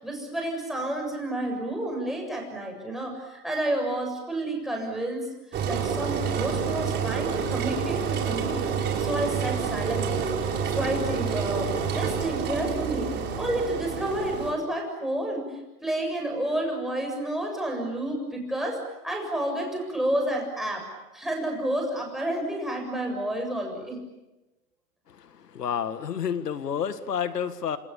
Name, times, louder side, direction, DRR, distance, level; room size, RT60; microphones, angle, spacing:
voice 1, 0.0-5.3 5.7-8.7 9.0-10.3 10.7-13.1 13.4-20.9 21.1-24.0, right 1 dB, ahead, 1 dB, 7.3 m, -30 dB
Engine, 5.5-14.5, right 6 dB, 25° right, 4.6 m, -28 dB
voice 2, 25.1-27.8, left 8 dB, 85° left, 11 dB, 1.9 m, -30 dB
30.0 x 28.0 x 7.1 m, 1.0 s
hypercardioid pair, 140°, 46 cm